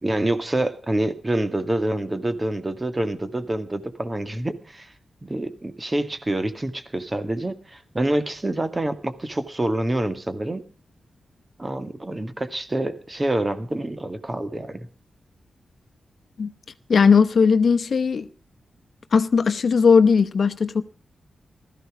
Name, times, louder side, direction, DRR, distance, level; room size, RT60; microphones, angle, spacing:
voice 1, 0.0-4.9 5.2-10.6 11.6-14.9, right 1 dB, 25° right, 1.9 m, -27 dB
voice 2, 16.9-18.3 19.1-20.8, left 5 dB, 65° left, 0.8 m, -18 dB
16.0 x 14.0 x 5.0 m
cardioid pair, 70°, 0 cm